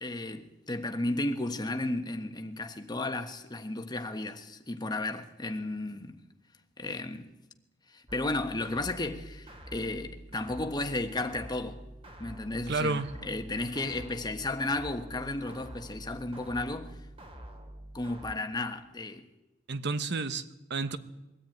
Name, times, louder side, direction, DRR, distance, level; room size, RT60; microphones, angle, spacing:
voice 1, 0.0-6.2 6.8-7.3 7.9-11.8 12.2-16.9 17.9-19.3, left 2 dB, 20° left, 1.3 m, -34 dB
sound 1, 8.1-18.3, right 1 dB, 30° right, 2.6 m, -47 dB
voice 2, 12.7-13.1 19.7-21.0, right 3 dB, 60° right, 1.1 m, -31 dB
22.5 x 13.5 x 9.2 m
head